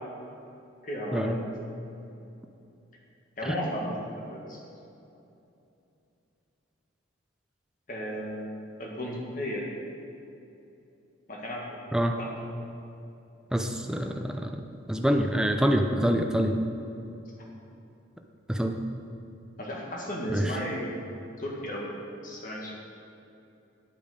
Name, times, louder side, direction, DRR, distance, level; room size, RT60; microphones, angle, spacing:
voice 1, 0.8-1.5 3.4-4.0 4.2-4.6 7.9-9.6 11.3-11.8 12.2-12.4 19.6-20.9 21.4-22.0 22.2-22.7, equal, 40° left, -3 dB, 1.9 m, -34 dB
voice 2, 13.5-14.5 14.9-16.6 18.5-18.8 20.3-20.5, equal, 5° right, 4 dB, 0.5 m, -26 dB
9.5 x 8.5 x 5.1 m, 2.8 s
head